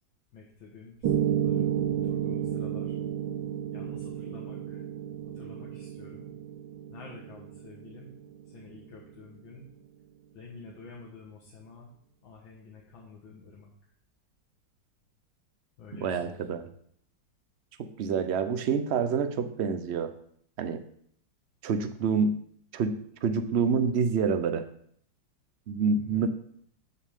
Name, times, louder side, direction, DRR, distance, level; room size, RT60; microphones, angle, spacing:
voice 1, 0.3-3.0 3.7-4.8 5.3-6.3 6.9-8.1 8.5-9.7 10.3-11.9 12.2-13.7 15.8-16.3 26.0-26.3, left 3 dB, 80° left, -3 dB, 2.1 m, -48 dB
Piano, 1.0-9.1, right 9 dB, 85° right, 1.6 m, -32 dB
voice 2, 16.0-16.7 17.8-20.1 20.6-20.8 21.6-22.3 22.7-24.7 25.7-26.3, right 5 dB, 65° right, 10 dB, 0.6 m, -27 dB
13.0 x 6.9 x 3.6 m, 0.65 s
omnidirectional pair, 2.1 m